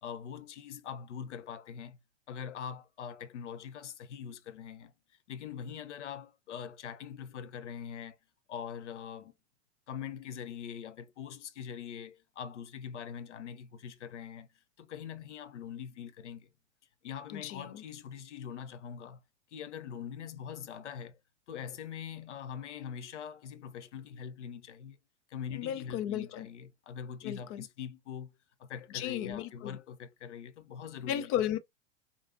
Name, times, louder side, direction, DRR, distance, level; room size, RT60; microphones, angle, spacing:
voice 1, 0.0-2.0 2.3-4.9 5.3-8.2 8.5-9.3 9.9-14.5 14.8-16.5 17.0-19.2 19.5-21.2 21.5-25.0 25.3-31.3, left 8 dB, 80° left, 0.7 m, -43 dB
voice 2, 17.3-17.8 25.5-26.5 27.2-27.7 28.9-29.8 31.1-31.6, left 11 dB, 40° left, 0.6 m, -34 dB
4.9 x 2.3 x 2.6 m
hypercardioid pair, 100°, 35 cm